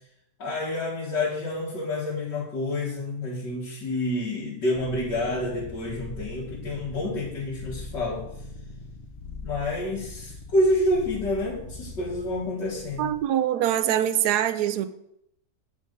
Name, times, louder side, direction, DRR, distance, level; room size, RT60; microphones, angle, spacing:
voice 1, 0.4-8.2 9.4-13.1, left 1 dB, 90° left, -7 dB, 2.3 m, -28 dB
sound 1, 4.7-13.2, left 2 dB, 40° left, 0.7 m, -41 dB
voice 2, 13.0-14.8, right 11 dB, 75° right, 9 dB, 1.1 m, -24 dB
7.8 x 5.1 x 5.2 m, 0.76 s
omnidirectional pair, 1.8 m